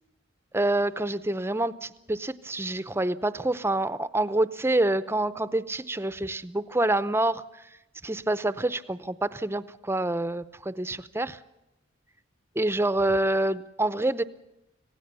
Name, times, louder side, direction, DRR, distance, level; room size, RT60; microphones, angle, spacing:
voice 1, 0.5-7.4 8.0-11.4 12.6-14.2, right 2 dB, 10° right, 14 dB, 0.7 m, -27 dB
26.0 x 17.0 x 6.8 m, 0.93 s
head